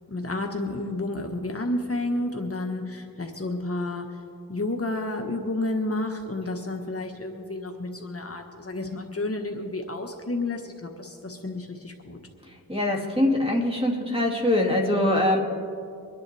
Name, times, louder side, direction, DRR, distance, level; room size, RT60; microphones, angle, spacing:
voice 1, 0.1-4.1 4.5-12.2, left 2 dB, 40° left, 3 dB, 1.3 m, -31 dB
voice 2, 12.7-15.4, left 1 dB, 15° right, 0 dB, 2.5 m, -23 dB
24.5 x 10.5 x 3.4 m, 2.5 s
cardioid pair, 55°, 37 cm